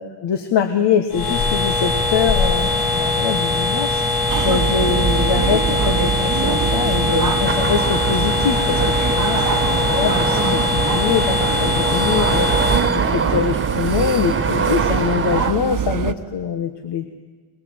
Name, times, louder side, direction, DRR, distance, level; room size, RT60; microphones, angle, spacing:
voice 1, 0.0-4.0 4.4-17.1, left 7 dB, 85° left, 8 dB, 1.4 m, -23 dB
sound 1, 1.1-12.8, left 2 dB, 70° left, 5.8 m, -21 dB
sound 2, 4.3-16.1, right 8 dB, 50° right, 1.0 m, -24 dB
sound 3, 7.5-15.5, right 4 dB, 30° right, 1.4 m, -25 dB
22.5 x 21.5 x 7.9 m, 1.5 s
cardioid pair, 115°, 40 cm